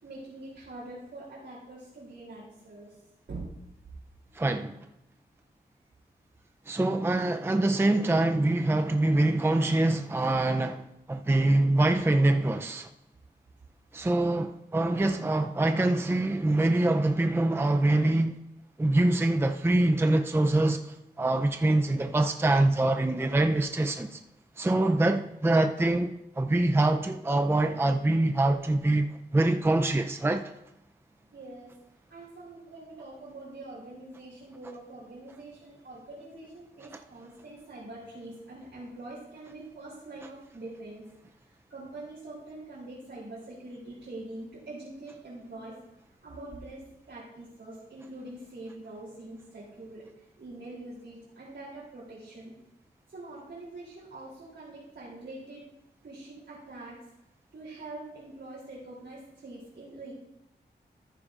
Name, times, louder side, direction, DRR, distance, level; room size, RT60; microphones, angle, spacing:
voice 1, 0.0-3.0 3.3-3.4 31.3-31.8 32.1-41.0 41.4-45.8 46.2-52.5 53.1-55.7 56.0-57.0 57.5-60.1, right 2 dB, 85° right, 3.3 m, -44 dB
voice 2, 4.3-4.8 6.7-12.9 13.9-18.4 18.8-24.2 24.6-29.1 29.3-30.5, right 2 dB, 15° right, 0.5 m, -24 dB
13.5 x 10.0 x 2.5 m
wide cardioid pair, 80°, 18 cm